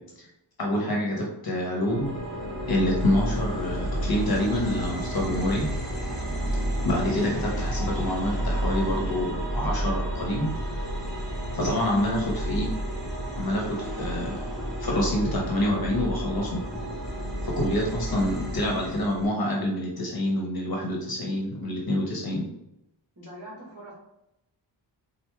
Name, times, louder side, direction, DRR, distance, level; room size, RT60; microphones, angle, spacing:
voice 1, 0.6-2.2 2.7-5.7 6.8-10.5 11.5-12.7 13.4-14.4 14.8-16.6 17.4-22.4, left 1 dB, 55° left, -1 dB, 1.0 m, -27 dB
sound 1, 1.8-19.3, right 1 dB, ahead, 1.4 m, -31 dB
voice 2, 23.2-23.9, right 1 dB, 45° right, -7 dB, 1.5 m, -42 dB
4.4 x 2.6 x 3.3 m, 0.83 s
wide cardioid pair, 90°, 44 cm